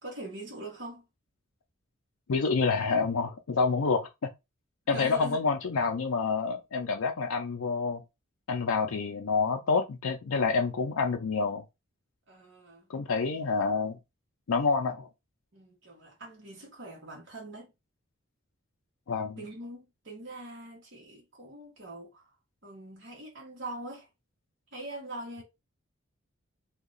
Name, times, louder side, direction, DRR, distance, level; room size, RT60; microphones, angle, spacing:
voice 1, 0.0-1.1 4.9-5.4 12.3-12.9 15.5-17.7 19.4-22.3 22.6-24.1 24.7-25.4, right 1 dB, 55° right, 1.3 m, -42 dB
voice 2, 2.3-4.0 4.9-8.0 8.5-11.6 12.9-14.0 14.5-15.1 19.1-19.4, left 4 dB, 85° left, 0.5 m, -28 dB
2.8 x 2.3 x 3.9 m
head